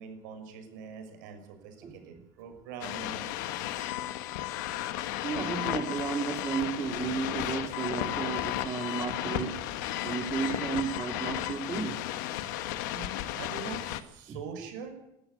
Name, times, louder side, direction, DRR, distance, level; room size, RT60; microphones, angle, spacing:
voice 1, 0.0-3.3 12.9-14.9, right 6 dB, 90° right, 6 dB, 6.1 m, -43 dB
sound 1, 2.8-14.0, left 13 dB, 85° left, 1.7 m, -34 dB
voice 2, 5.2-9.6 10.0-12.0 14.3-14.4, right 6 dB, 30° right, 5 dB, 3.9 m, -33 dB
21.5 x 13.5 x 9.5 m, 0.85 s
cardioid pair, 145°, 10 cm